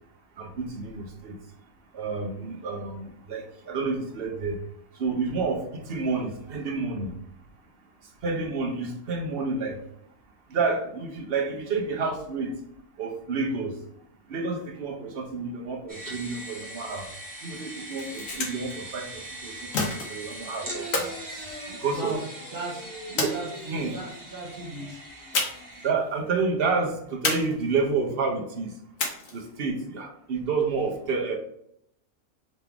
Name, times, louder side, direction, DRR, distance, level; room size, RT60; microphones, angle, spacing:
voice 1, 0.4-1.4 1.9-4.6 4.9-7.2 8.2-9.8 10.5-12.6 13.0-13.8 14.3-17.1 17.4-21.1 21.8-22.2 23.2-23.4 23.7-23.9 25.8-28.8 29.3-31.4, right 4 dB, 50° right, 0.8 m, -29 dB
sound 1, 15.9-25.9, right 1 dB, 15° right, 1.0 m, -40 dB
sound 2, 17.8-18.8 19.7-20.4 20.9-22.2 23.2-23.9 25.3-25.8 26.1-26.2 27.2-28.0 29.0-29.5, left 3 dB, 85° left, 1.5 m, -30 dB
voice 2, 21.7-25.1, right 2 dB, 30° right, 2.1 m, -38 dB
3.9 x 3.5 x 3.5 m
omnidirectional pair, 1.6 m